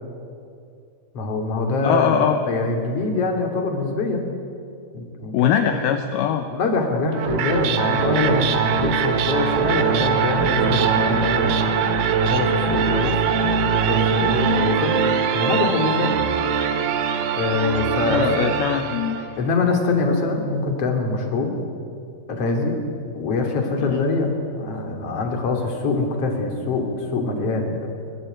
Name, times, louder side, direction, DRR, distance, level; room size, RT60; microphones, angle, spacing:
voice 1, 1.1-4.2 4.9-5.7 6.5-11.6 12.2-13.2 13.7-15.0 15.3-16.1 17.4-18.5 19.4-21.5 22.3-22.8 23.2-24.3 24.6-27.9, left 3 dB, 35° left, 3 dB, 3.4 m, -24 dB
voice 2, 1.8-2.5 5.3-6.5 18.0-19.2 23.8-24.0, left 9 dB, 75° left, 7 dB, 2.6 m, -22 dB
sound 1, 7.1-19.4, right 6 dB, 65° right, 3.1 m, -22 dB
23.0 x 20.5 x 9.3 m, 2.4 s
omnidirectional pair, 5.2 m